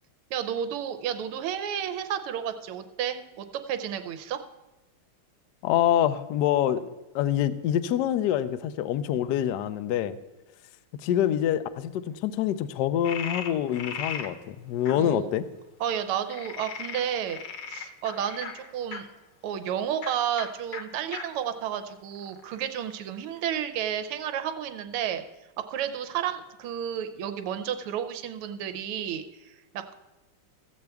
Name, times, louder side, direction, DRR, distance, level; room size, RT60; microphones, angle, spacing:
voice 1, 0.3-4.4 14.9-15.3 15.8-17.4 17.7-19.1 19.4-25.2 25.7-29.9, right 9 dB, 90° right, 9 dB, 1.6 m, -31 dB
voice 2, 5.6-6.9 7.1-10.2 10.9-15.4, left 11 dB, 80° left, 13 dB, 0.9 m, -26 dB
Frog, 13.0-14.3 14.9-15.0 16.3-19.0 19.9-20.1 20.4-20.5 20.7-20.8 21.1-21.2 21.8-22.6, left 7 dB, 60° left, 1.5 m, -37 dB
15.0 x 7.9 x 3.5 m, 1.1 s
omnidirectional pair, 2.4 m